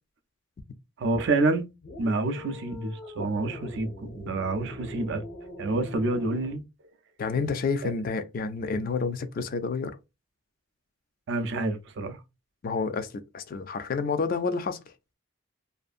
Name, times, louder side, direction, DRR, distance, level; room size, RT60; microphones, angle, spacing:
voice 1, 1.0-1.7 2.0-5.2 5.6-6.6 7.8-7.9 11.3-12.2, right 2 dB, 55° right, 0.4 m, -28 dB
sound 1, 1.8-6.6, left 2 dB, 75° left, 0.7 m, -43 dB
voice 2, 7.2-10.0 12.6-14.9, left 4 dB, 40° left, 0.3 m, -29 dB
2.6 x 2.4 x 2.4 m
head